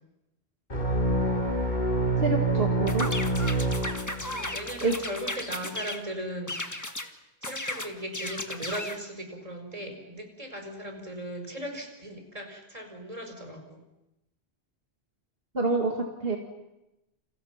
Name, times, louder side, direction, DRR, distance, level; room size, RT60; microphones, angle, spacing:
sound 1, 0.7-4.5, right 2 dB, 45° left, 2.9 m, -26 dB
voice 1, 2.2-3.1 4.8-4.9 15.5-16.4, right 3 dB, 60° right, 1 dB, 2.4 m, -27 dB
sound 2, 2.9-6.0 6.5-7.1 7.4-9.0, left 1 dB, 15° left, 1.6 m, -35 dB
voice 2, 4.2-6.6 7.4-13.8, equal, 35° right, 4 dB, 4.6 m, -38 dB
29.5 x 28.5 x 5.9 m, 0.93 s
omnidirectional pair, 1.1 m